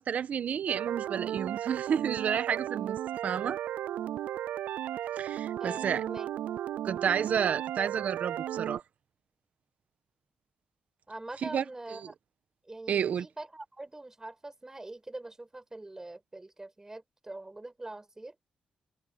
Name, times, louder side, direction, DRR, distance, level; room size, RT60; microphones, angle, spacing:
voice 1, 0.0-3.0 3.2-3.6 5.2-6.0 6.8-8.8 11.4-11.6 11.9-12.1 12.9-13.3, right 8 dB, 70° right, 1.5 m, -31 dB
sound 1, 0.7-8.8, right 12 dB, 90° right, 0.3 m, -35 dB
voice 2, 5.6-6.3 11.1-12.1 12.7-18.4, right 2 dB, 20° right, 5.8 m, -43 dB
cardioid pair, 65°, 3 cm